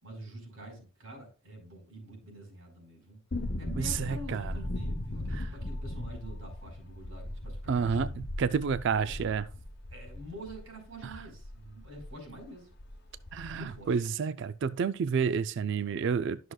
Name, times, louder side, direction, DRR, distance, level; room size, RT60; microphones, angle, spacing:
voice 1, 0.0-3.2 3.6-8.1 9.0-9.1 9.9-12.7 13.5-14.0, right 1 dB, 80° right, 4.7 m, -47 dB
sound 1, 3.3-12.1 12.4-12.5 12.8-13.8 14.1-14.2, left 1 dB, 50° left, 0.9 m, -38 dB
voice 2, 3.8-4.5 7.7-9.4 11.0-11.1 13.3-16.5, right 6 dB, 60° right, 0.4 m, -30 dB
13.0 x 6.3 x 2.3 m
head